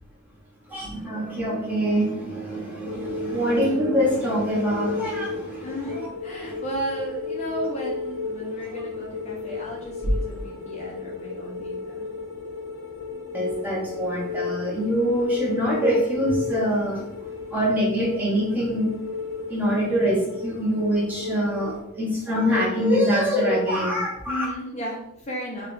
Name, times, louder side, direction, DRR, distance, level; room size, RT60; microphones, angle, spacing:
voice 1, 0.7-6.1 6.3-6.6 13.3-17.1 17.5-18.9 19.5-24.4, equal, 10° right, -5 dB, 1.0 m, -24 dB
sound 1, 2.8-21.8, left 4 dB, 90° left, 0.8 m, -34 dB
voice 2, 5.6-12.1 24.3-25.7, right 1 dB, 35° left, -2 dB, 0.7 m, -34 dB
4.9 x 2.4 x 2.6 m, 0.78 s
head